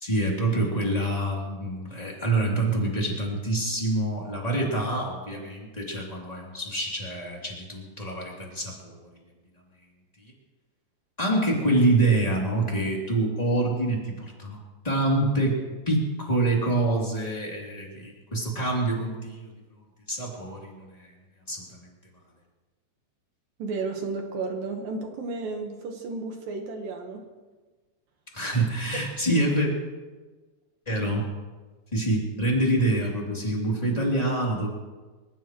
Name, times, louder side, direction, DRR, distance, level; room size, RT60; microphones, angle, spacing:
voice 1, 0.0-9.1 11.2-14.6 14.8-15.6 15.9-19.5 20.1-21.1 21.5-21.6 28.3-29.7 30.9-31.3 31.9-34.7, right 2 dB, 10° left, -3 dB, 2.4 m, -26 dB
voice 2, 23.6-27.3 28.9-29.0, right 3 dB, 65° right, 3 dB, 2.8 m, -33 dB
26.5 x 15.5 x 3.2 m, 1.3 s
omnidirectional pair, 4.9 m